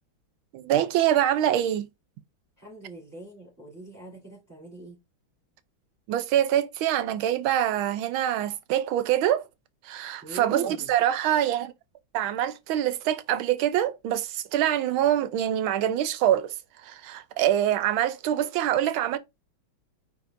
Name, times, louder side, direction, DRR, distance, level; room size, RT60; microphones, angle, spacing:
voice 1, 0.5-1.9 6.1-9.4 9.8-11.7 12.1-16.5 16.8-19.2, right 11 dB, 90° right, 1.5 m, -25 dB
voice 2, 2.6-5.0 10.2-10.9, right 2 dB, 10° right, 3.3 m, -43 dB
9.2 x 4.1 x 2.6 m
omnidirectional pair, 2.2 m